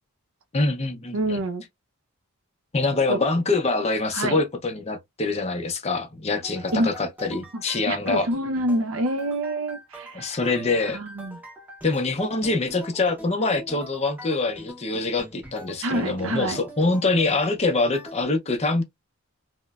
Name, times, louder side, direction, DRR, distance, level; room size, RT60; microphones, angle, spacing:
voice 1, 0.5-1.4 2.7-8.3 10.1-11.0 11.8-18.8, left 3 dB, 30° left, 0.6 m, -25 dB
voice 2, 1.1-1.6 3.1-3.2 4.1-4.4 6.7-6.9 7.5-10.3 10.9-11.4 15.8-16.6, right 1 dB, 65° right, 0.6 m, -27 dB
sound 1, 6.4-18.2, equal, 10° right, 0.7 m, -43 dB
3.0 x 2.1 x 2.3 m
head